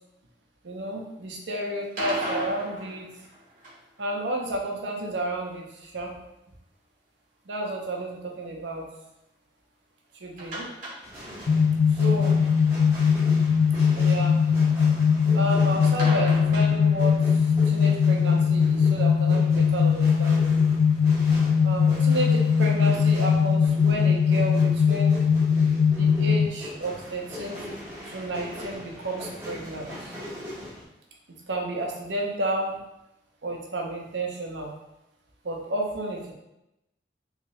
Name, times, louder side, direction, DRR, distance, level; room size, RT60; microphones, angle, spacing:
voice 1, 0.6-3.1 4.0-6.1 7.5-8.9 10.2-10.7 12.0-12.4 13.9-14.4 15.3-17.2 17.7-20.6 21.6-25.2 25.9-27.6 28.1-30.1 31.3-32.8 33.4-34.7 35.4-36.3, right 1 dB, 85° right, 0 dB, 0.7 m, -31 dB
sound 1, 1.8-4.0 10.4-11.6 11.9-12.0 12.4-12.5 16.0-17.3, right 1 dB, 45° right, 0.9 m, -35 dB
sound 2, 11.0-30.8, left 1 dB, 10° right, 1.4 m, -41 dB
sound 3, 11.5-26.5, left 6 dB, 55° left, 0.3 m, -21 dB
3.2 x 2.8 x 3.1 m, 0.87 s
head